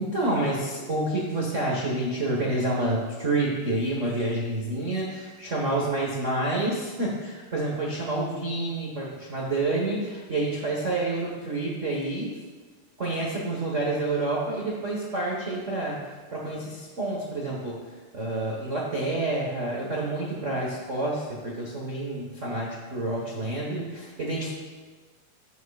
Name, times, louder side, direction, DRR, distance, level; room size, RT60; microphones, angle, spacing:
voice 1, 0.0-12.3 13.0-16.0 16.3-17.8 18.1-24.5, right 2 dB, 60° right, -4 dB, 0.7 m, -28 dB
15.0 x 9.3 x 2.4 m, 1.4 s
omnidirectional pair, 3.8 m